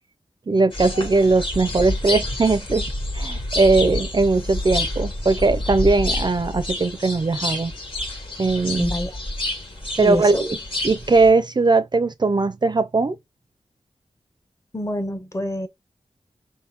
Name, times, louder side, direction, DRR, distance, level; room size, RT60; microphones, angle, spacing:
voice 1, 0.5-2.9 3.1-7.7 8.4-8.9 10.0-10.6 10.8-13.2, right 3 dB, 35° right, 0.4 m, -19 dB
sound 1, 0.7-11.3, left 1 dB, 45° left, 1.6 m, -28 dB
voice 2, 8.8-9.2 10.0-10.4 14.7-15.7, left 1 dB, 25° left, 0.8 m, -26 dB
4.4 x 3.3 x 2.9 m
wide cardioid pair, 85°, 12 cm